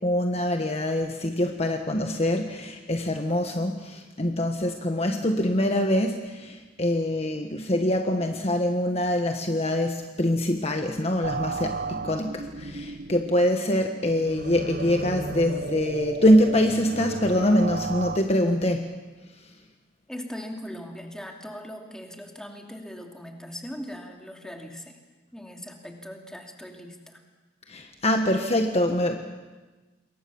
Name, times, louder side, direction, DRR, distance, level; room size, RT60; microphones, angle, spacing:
voice 1, 0.0-18.8 27.7-29.2, left 1 dB, 35° left, 4 dB, 1.4 m, -24 dB
sound 1, 11.2-18.2, right 4 dB, 50° right, 0.8 m, -34 dB
voice 2, 20.1-25.0 25.3-27.2, equal, 5° left, 2 dB, 2.7 m, -40 dB
27.5 x 22.0 x 7.1 m, 1.2 s
head